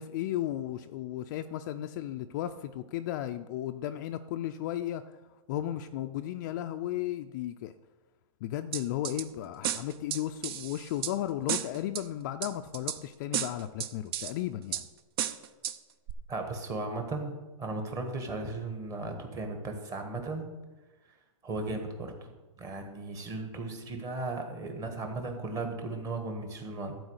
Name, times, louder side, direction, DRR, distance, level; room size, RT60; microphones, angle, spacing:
voice 1, 0.0-5.0 5.5-7.7 8.4-14.9, left 12 dB, 35° left, 8 dB, 0.4 m, -34 dB
sound 1, 8.7-9.2 9.6-11.1 11.5-12.0 12.4-13.0 13.3-14.3 14.7-14.8 15.2-15.8 16.1-16.2, right 10 dB, 45° right, 0.7 m, -33 dB
voice 2, 16.3-20.5 21.4-22.3 22.6-27.0, right 2 dB, 20° right, 4 dB, 1.6 m, -36 dB
12.0 x 4.8 x 8.0 m, 1.2 s
hypercardioid pair, 150°, 17 cm